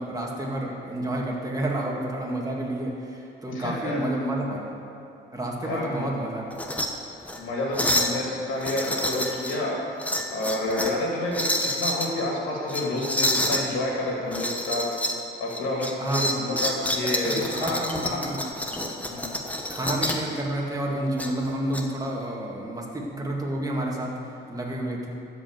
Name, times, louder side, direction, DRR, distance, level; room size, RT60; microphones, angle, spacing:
voice 1, 0.0-4.8 5.3-6.4 16.0-16.6 17.0-18.5 19.7-25.2, right 1 dB, 20° right, -2 dB, 2.1 m, -30 dB
voice 2, 3.5-4.0 5.6-6.1 7.4-9.8 10.3-14.8 15.4-18.2 19.1-19.4, left 2 dB, 85° left, -3 dB, 2.4 m, -29 dB
sound 1, 6.5-6.9 7.2-7.4 7.7-8.2 8.6-9.6 10.0-11.0 11.3-12.1 12.7-13.6 14.3-15.2 15.5-20.3 21.2-21.8, left 1 dB, 5° left, 1.1 m, -28 dB
13.0 x 5.2 x 8.0 m, 2.7 s
cardioid pair, 90°, 20 cm